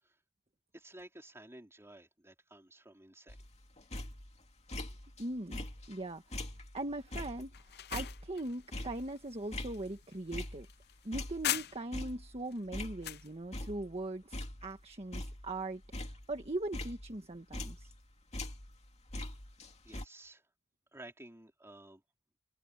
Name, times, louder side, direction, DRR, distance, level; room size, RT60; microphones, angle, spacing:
voice 1, 0.7-3.4 19.2-19.3 19.8-20.5 20.9-22.0, right 1 dB, 10° right, 3.9 m, -53 dB
sound 1, 3.3-5.2 5.5-10.8 11.1-13.2 13.5-14.0 14.3-18.0 18.3-20.1, left 1 dB, 30° left, 2.5 m, -43 dB
voice 2, 5.2-6.5 6.7-10.7 11.0-17.9, right 2 dB, 25° right, 1.5 m, -40 dB
sound 2, 7.5-12.1 12.5-13.3, left 12 dB, 45° left, 0.6 m, -41 dB
head